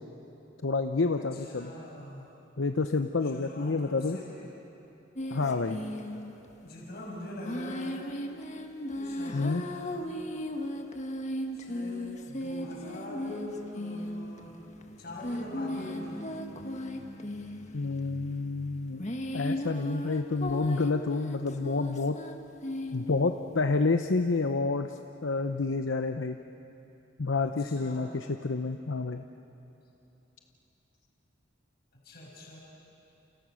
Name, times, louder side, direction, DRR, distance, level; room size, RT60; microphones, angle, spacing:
voice 1, 0.6-1.7 2.6-4.2 5.3-5.8 9.3-9.7 17.7-19.1 19.3-22.2 22.9-26.4 27.2-29.2, left 3 dB, 75° left, 6 dB, 0.8 m, -29 dB
voice 2, 1.3-2.3 3.2-4.5 5.3-6.2 6.6-8.0 8.9-10.1 11.5-14.5 15.0-16.2 21.0-21.2 27.6-28.1 32.0-32.6, left 1 dB, 55° left, -4 dB, 6.2 m, -43 dB
sound 1, 5.2-6.5 7.4-23.3, left 1 dB, 35° left, 1.6 m, -37 dB
29.5 x 28.5 x 6.4 m, 3.0 s
head